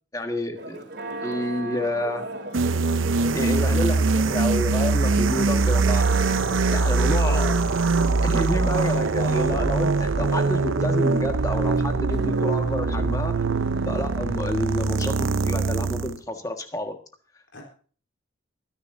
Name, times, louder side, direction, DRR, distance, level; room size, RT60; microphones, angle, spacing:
voice 1, 0.1-0.8 1.2-2.2 3.3-6.1 6.7-7.6 8.2-13.3 13.9-17.0, left 1 dB, 20° left, 4 dB, 1.6 m, -29 dB
Church bell, 0.5-15.5, right 1 dB, 55° right, 3.2 m, -38 dB
sound 1, 2.5-16.2, right 3 dB, 85° right, 0.7 m, -22 dB
voice 2, 6.9-8.6 8.8-9.0 17.5-17.6, right 1 dB, 70° left, 0 dB, 4.1 m, -39 dB
24.0 x 10.5 x 2.7 m, 0.42 s
head